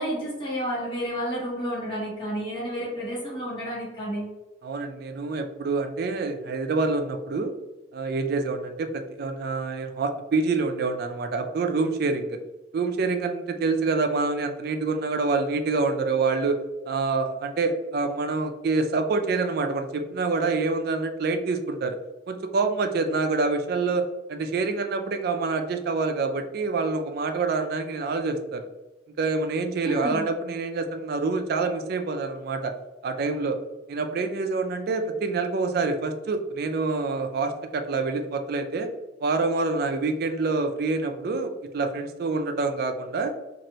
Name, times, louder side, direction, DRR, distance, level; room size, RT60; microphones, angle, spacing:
voice 1, 0.0-4.3 29.8-30.2, equal, 30° left, -7 dB, 1.4 m, -30 dB
voice 2, 4.6-7.5 7.9-12.4 12.7-16.6 16.9-22.0 22.3-28.7 29.2-32.7 33.0-33.6 33.9-38.9 39.2-43.3, right 3 dB, 60° right, 6 dB, 0.4 m, -26 dB
3.1 x 2.6 x 2.7 m, 1.0 s
head